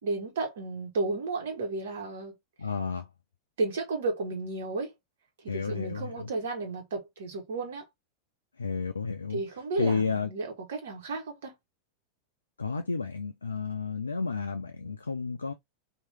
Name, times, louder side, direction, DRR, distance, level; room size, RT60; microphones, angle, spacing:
voice 1, 0.0-2.3 3.6-4.9 5.4-7.8 9.3-11.5, right 3 dB, 60° right, 1.3 m, -33 dB
voice 2, 2.6-3.1 5.5-6.3 8.6-9.4 9.8-10.3 12.6-15.5, left 4 dB, 75° left, 0.4 m, -31 dB
3.0 x 2.5 x 3.2 m
figure-of-eight pair, 90°, 0 cm